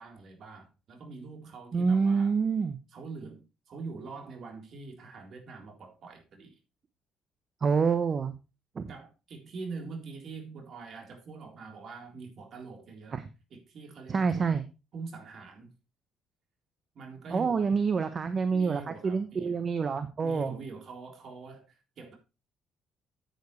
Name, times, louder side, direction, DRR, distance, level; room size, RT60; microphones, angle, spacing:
voice 1, 0.0-2.4 2.9-6.6 8.9-13.2 13.5-14.6 14.9-15.7 16.9-17.8 18.5-19.5 20.2-22.2, right 4 dB, 55° right, 3.7 m, -44 dB
voice 2, 1.7-2.8 7.6-8.3 8.7-8.9 13.1-13.2 14.1-14.6 17.3-20.5, right 5 dB, 35° right, 0.9 m, -27 dB
9.6 x 9.2 x 3.2 m
cardioid pair, 100°, 0 cm